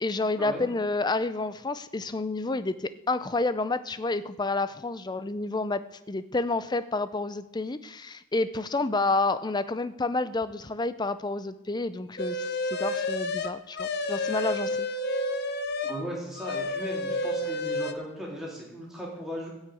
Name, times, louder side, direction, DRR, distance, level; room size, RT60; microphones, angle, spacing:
voice 1, 0.0-5.8 6.1-14.9, left 3 dB, 20° left, 13 dB, 0.5 m, -29 dB
sound 1, 12.2-16.0 16.4-17.9, left 1 dB, 50° left, 0.9 m, -30 dB
voice 2, 15.8-19.5, equal, ahead, -4 dB, 3.7 m, -37 dB
15.5 x 6.5 x 8.4 m, 0.92 s
head